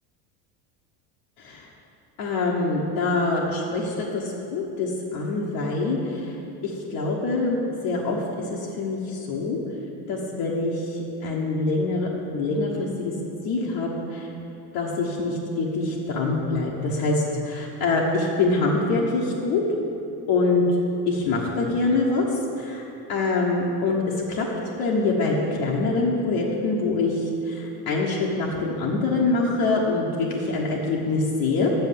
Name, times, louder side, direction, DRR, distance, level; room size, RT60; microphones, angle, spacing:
voice 1, 1.4-1.7 2.2-6.4 6.6-8.2 8.5-9.6 10.1-13.1 13.4-14.3 14.7-19.6 20.3-20.6 21.1-22.3 22.6-22.8 23.1-24.0 24.3-24.5 24.8-31.7, left 3 dB, 55° left, -4 dB, 1.2 m, -25 dB
7.4 x 5.6 x 7.5 m, 2.9 s
supercardioid pair, 110°, 46 cm